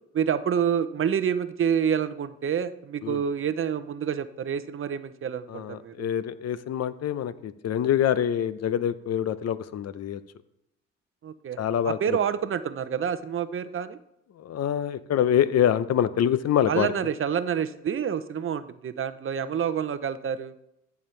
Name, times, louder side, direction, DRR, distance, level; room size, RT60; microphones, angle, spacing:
voice 1, 0.1-6.1 11.2-11.6 11.8-14.0 16.7-20.5, right 8 dB, 45° right, 13 dB, 0.7 m, -28 dB
voice 2, 5.5-10.2 11.6-12.2 14.4-16.9, left 10 dB, 55° left, 14 dB, 0.7 m, -25 dB
14.5 x 7.1 x 3.2 m, 0.82 s
cardioid pair, 90°, 30 cm